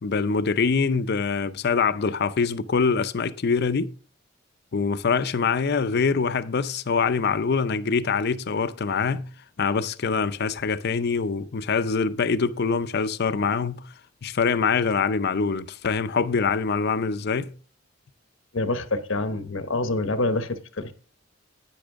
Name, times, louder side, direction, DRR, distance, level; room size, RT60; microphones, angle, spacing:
voice 1, 0.0-3.9 4.7-9.3 9.6-13.8 14.2-17.5, left 5 dB, 55° left, 0.5 m, -24 dB
voice 2, 18.5-20.9, left 2 dB, 80° left, 0.9 m, -26 dB
10.0 x 9.2 x 3.6 m
head